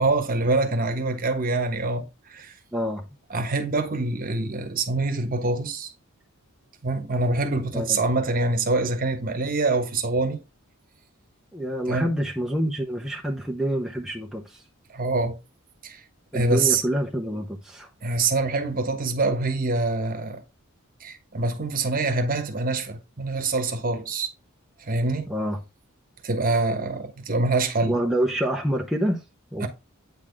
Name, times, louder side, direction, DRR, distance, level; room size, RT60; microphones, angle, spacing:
voice 1, 0.0-2.5 3.3-5.9 6.8-10.4 11.9-12.1 14.9-15.4 15.8-16.0 16.3-16.8 18.0-20.4 21.0-24.3 24.9-25.3 26.2-28.0 29.6-29.7, right 3 dB, 40° right, 1.1 m, -25 dB
voice 2, 2.7-3.1 7.7-8.0 11.5-14.6 16.3-17.9 25.3-25.6 27.8-29.2 29.5-29.7, equal, ahead, 0.7 m, -27 dB
8.7 x 4.1 x 3.4 m
head